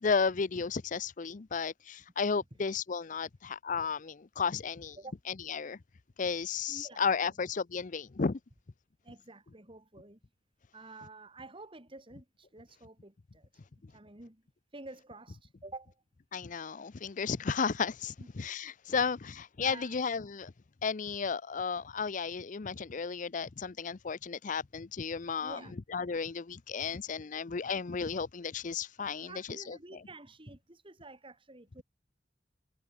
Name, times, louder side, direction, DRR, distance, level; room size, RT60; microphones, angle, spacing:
voice 1, 0.0-5.0 5.3-5.8 6.2-8.4 16.3-20.5 20.8-25.6 25.9-29.8, left 5 dB, 45° left, 0.6 m, -33 dB
voice 2, 6.7-7.3 9.0-10.2 10.7-13.5 13.9-14.4 14.7-16.0 18.2-18.3 19.6-19.9 25.4-25.7 29.2-31.8, right 2 dB, 30° right, 2.8 m, -49 dB
head